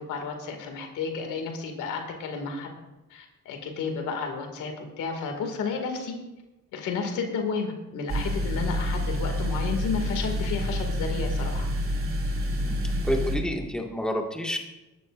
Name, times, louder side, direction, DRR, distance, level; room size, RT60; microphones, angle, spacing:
voice 1, 0.0-2.7 3.1-6.2 6.7-11.7, left 5 dB, 85° left, 3 dB, 2.3 m, -32 dB
sound 1, 8.1-13.4, equal, 45° right, 2.9 m, -28 dB
voice 2, 13.0-14.6, equal, 5° left, 1 dB, 1.9 m, -29 dB
20.5 x 11.5 x 2.6 m, 0.99 s
cardioid pair, 90°, 30 cm